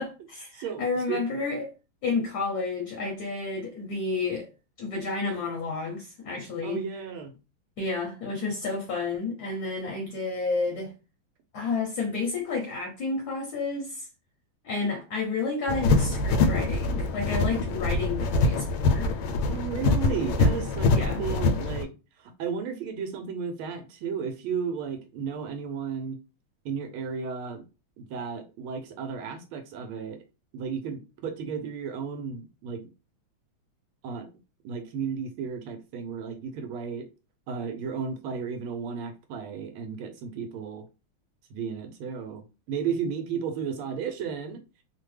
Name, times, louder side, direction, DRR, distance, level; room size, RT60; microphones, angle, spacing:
voice 1, 0.0-1.7 2.0-4.5 4.8-6.8 7.8-10.9 11.5-14.1 14.6-19.1 20.9-21.2, left 4 dB, 65° left, 1.0 m, -31 dB
voice 2, 6.6-7.3 19.4-21.9 22.2-26.2 26.6-27.6 28.0-30.2 30.5-32.9 34.0-34.3 34.6-37.1 37.5-40.8 41.5-44.6, right 6 dB, 80° right, 1.5 m, -33 dB
sound 1, 15.7-21.8, left 3 dB, 80° left, 1.4 m, -24 dB
3.5 x 2.1 x 3.1 m
omnidirectional pair, 2.3 m